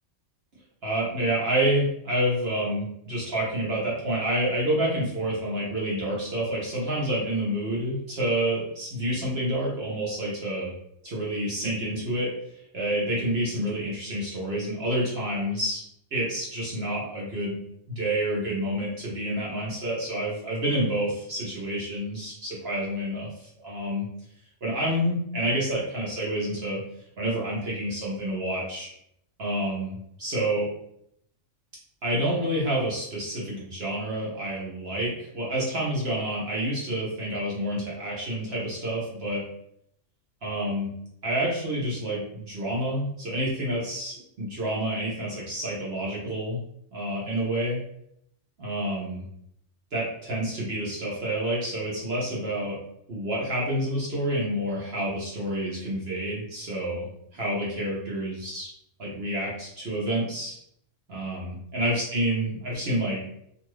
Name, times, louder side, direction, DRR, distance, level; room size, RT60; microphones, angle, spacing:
voice 1, 0.8-10.7 11.0-12.3 12.7-15.8 16.1-17.6 17.9-24.0 24.6-26.8 27.2-28.9 29.4-30.7 32.0-39.4 40.4-40.9 41.2-46.6 46.9-47.8 48.6-49.3 49.9-52.8 53.1-58.7 59.0-60.6 61.1-63.2, right 1 dB, 55° right, -6 dB, 1.0 m, -28 dB
2.6 x 2.5 x 3.0 m, 0.73 s
omnidirectional pair, 1.4 m